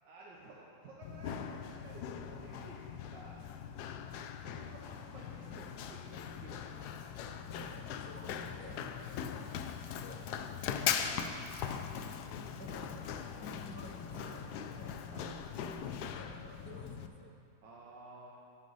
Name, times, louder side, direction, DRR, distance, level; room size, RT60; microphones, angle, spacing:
voice 1, 0.0-3.4 4.4-6.0 6.4-7.1 9.0-9.1 10.8-11.4 15.1-15.5 17.6-18.3, right 2 dB, 75° right, -4 dB, 1.6 m, -53 dB
Run, 1.0-17.1, left 8 dB, 70° left, 1.0 m, -40 dB
voice 2, 7.5-8.8 9.1-9.5 9.9-11.0 12.2-15.0 15.9-17.3, equal, 10° left, -3 dB, 0.6 m, -52 dB
16.5 x 6.2 x 4.0 m, 2.6 s
omnidirectional pair, 1.9 m